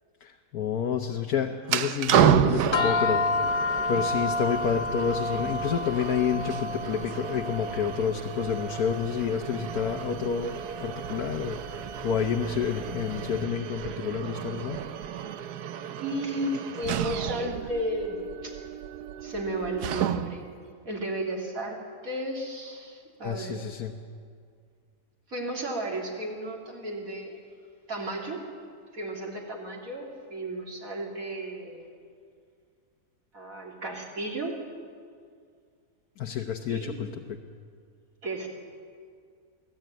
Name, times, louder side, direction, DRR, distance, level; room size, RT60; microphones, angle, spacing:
voice 1, 0.2-14.8 23.2-23.9 36.2-37.4, left 7 dB, 75° left, 3 dB, 1.4 m, -29 dB
sound 1, 1.6-20.5, right 10 dB, 90° right, 1.4 m, -31 dB
sound 2, 2.7-13.2, left 2 dB, 20° left, 1.2 m, -31 dB
voice 2, 16.0-18.6 19.2-20.4 20.9-21.8 22.0-23.6 25.3-27.4 27.9-28.4 28.9-31.9 33.3-34.6 36.7-37.0 38.2-38.5, right 1 dB, 60° right, -1 dB, 3.6 m, -33 dB
24.0 x 16.0 x 9.2 m, 2.2 s
omnidirectional pair, 1.6 m